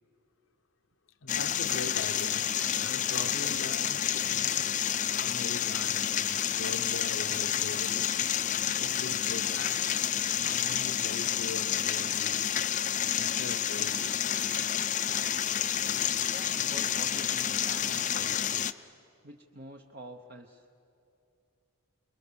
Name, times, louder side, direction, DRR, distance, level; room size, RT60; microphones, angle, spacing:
voice 1, 1.2-2.5 2.7-4.7 5.2-8.1 8.5-12.6 13.1-14.5, left 3 dB, 70° left, 0.9 m, -42 dB
sound 1, 1.3-18.7, left 10 dB, 35° left, 0.5 m, -29 dB
voice 2, 16.2-18.5 19.2-20.7, right 1 dB, 50° right, 1.0 m, -47 dB
29.0 x 22.0 x 7.0 m
head